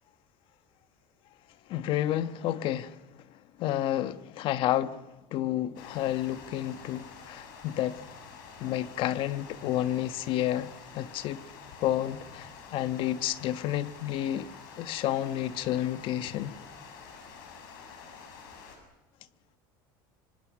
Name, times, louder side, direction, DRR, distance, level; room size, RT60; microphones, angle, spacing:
voice 1, 1.7-3.0 3.6-5.0 5.3-8.0 8.6-11.4 11.8-14.5 14.8-16.6, left 12 dB, 55° left, 1.3 m, -30 dB
Water, 5.8-18.8, left 5 dB, 90° left, 7.2 m, -48 dB
26.5 x 25.5 x 6.4 m
supercardioid pair, 125°, 10 cm